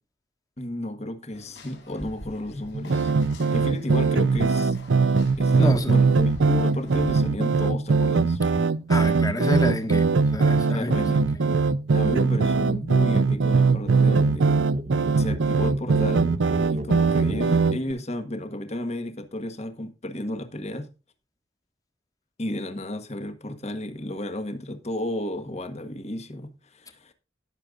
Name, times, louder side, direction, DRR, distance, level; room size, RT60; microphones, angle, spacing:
voice 1, 0.6-3.1 3.5-4.8 5.4-8.4 10.7-11.3 11.9-14.5 15.2-16.3 16.7-20.9 22.4-27.1, left 1 dB, 35° left, 1.4 m, -32 dB
sound 1, 1.3-7.2, equal, 75° left, 5.7 m, -44 dB
sound 2, 2.7-17.9, right 4 dB, 85° right, 0.6 m, -21 dB
voice 2, 5.6-5.9 8.9-11.4, left 1 dB, 20° left, 1.6 m, -28 dB
sound 3, 11.4-11.7 11.9-17.5, right 1 dB, 40° right, 1.0 m, -37 dB
19.0 x 6.7 x 2.5 m
head